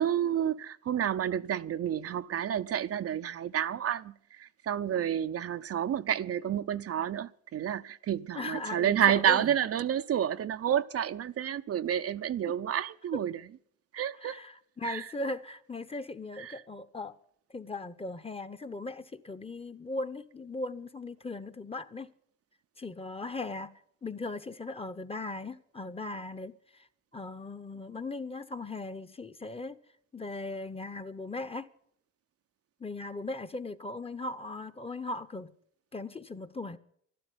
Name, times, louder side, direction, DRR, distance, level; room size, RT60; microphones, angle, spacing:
voice 1, 0.0-13.6 13.9-14.4 14.8-15.1 16.4-16.6, right 9 dB, 50° right, 0.6 m, -30 dB
voice 2, 8.3-9.5 12.5-12.6 14.2-17.2 17.5-22.1 22.8-23.7 24.0-26.9 27.1-29.8 30.1-31.7 32.8-35.5 35.9-36.8, left 2 dB, 20° left, 1.0 m, -38 dB
12.0 x 12.0 x 9.6 m
cardioid pair, 90°, 30 cm